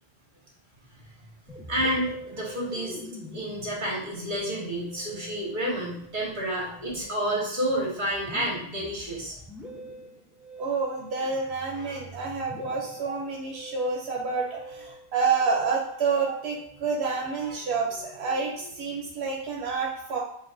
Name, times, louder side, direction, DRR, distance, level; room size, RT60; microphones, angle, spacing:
Musical instrument, 1.5-19.1, right 1 dB, ahead, 0.7 m, -45 dB
voice 1, 1.7-3.0 3.3-9.4, right 1 dB, 50° right, -4 dB, 1.6 m, -30 dB
voice 2, 10.6-20.2, right 4 dB, 85° right, -1 dB, 0.9 m, -28 dB
7.2 x 2.5 x 2.5 m, 0.67 s
omnidirectional pair, 1.1 m